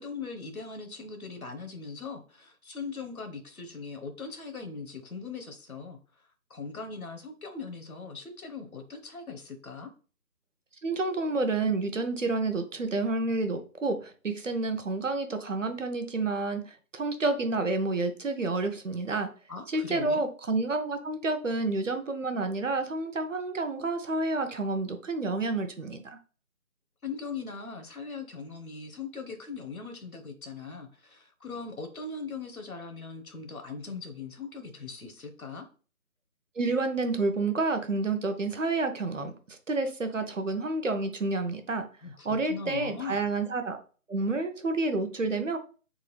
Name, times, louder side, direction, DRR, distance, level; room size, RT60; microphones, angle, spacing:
voice 1, 0.0-6.0 6.5-9.9 19.5-20.3 27.0-35.6 42.0-43.2, left 4 dB, 75° left, 6 dB, 1.0 m, -40 dB
voice 2, 10.8-16.6 16.9-19.3 19.7-26.2 36.6-41.9 42.2-43.8 44.1-45.6, right 3 dB, 60° right, 8 dB, 0.7 m, -29 dB
3.7 x 2.4 x 3.1 m, 0.37 s
figure-of-eight pair, 175°, 43 cm